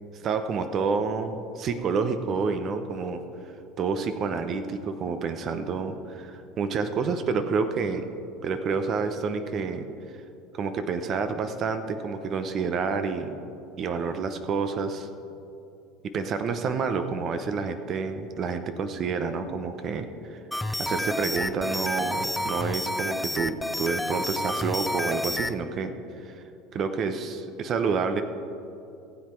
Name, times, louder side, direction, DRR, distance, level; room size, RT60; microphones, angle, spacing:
voice 1, 0.2-3.2 3.8-8.1 8.4-9.9 10.5-13.3 13.8-15.1 16.0-20.4 20.8-25.9 26.2-26.4 26.7-28.2, right 5 dB, 45° right, 9 dB, 0.8 m, -29 dB
sound 1, 20.5-25.5, left 1 dB, 5° left, 0.4 m, -30 dB
15.0 x 7.6 x 4.4 m, 2.7 s
hypercardioid pair, 90°, 0 cm